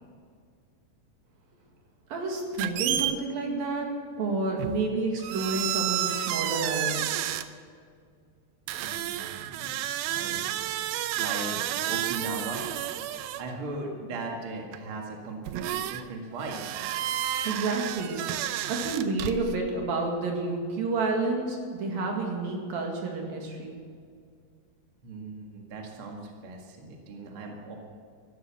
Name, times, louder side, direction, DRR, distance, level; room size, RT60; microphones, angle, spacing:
voice 1, 2.1-3.9 4.2-7.2 17.4-23.8, right 3 dB, 60° right, 1 dB, 3.7 m, -30 dB
sound 1, 2.6-3.2 4.6-4.9 5.2-7.4 8.7-13.5 14.7-14.8 15.5-16.0 16.4-19.6, right 12 dB, 80° right, 2.4 m, -31 dB
voice 2, 8.8-9.8 10.1-10.6 11.2-12.6 13.4-16.6 25.0-27.8, right 2 dB, 45° right, 0 dB, 2.0 m, -38 dB
14.5 x 12.0 x 7.2 m, 2.1 s
omnidirectional pair, 4.7 m